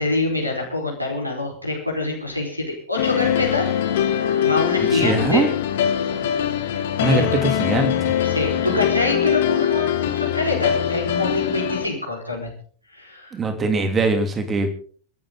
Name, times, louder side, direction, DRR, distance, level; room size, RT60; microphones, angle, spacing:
voice 1, 0.0-4.0 4.4-5.5 7.1-7.4 8.2-12.5 12.9-13.4, left 2 dB, 90° right, 2 dB, 4.9 m, -25 dB
sound 1, 3.0-11.9, left 10 dB, 55° left, 2.1 m, -22 dB
voice 2, 4.9-5.5 7.0-8.1 13.3-14.8, right 3 dB, 20° right, 7 dB, 2.9 m, -22 dB
28.0 x 12.0 x 4.0 m, 0.44 s
figure-of-eight pair, 90°, 0 cm